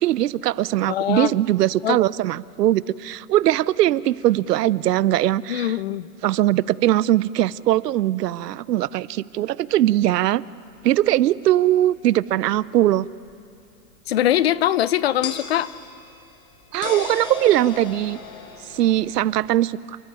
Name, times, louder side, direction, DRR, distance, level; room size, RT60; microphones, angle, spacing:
voice 1, 0.0-5.7 6.2-10.4 10.8-13.1 16.7-18.2 18.7-20.0, right 14 dB, 80° right, 19 dB, 0.8 m, -20 dB
voice 2, 0.9-1.4 1.8-2.0 5.5-6.1 14.1-15.7, left 12 dB, 40° left, 18 dB, 0.6 m, -22 dB
sound 1, 10.8-10.9 13.3-13.4 15.2-19.6, left 6 dB, 10° left, 0.8 m, -36 dB
29.5 x 22.0 x 9.3 m, 2.6 s
supercardioid pair, 180°, 48 cm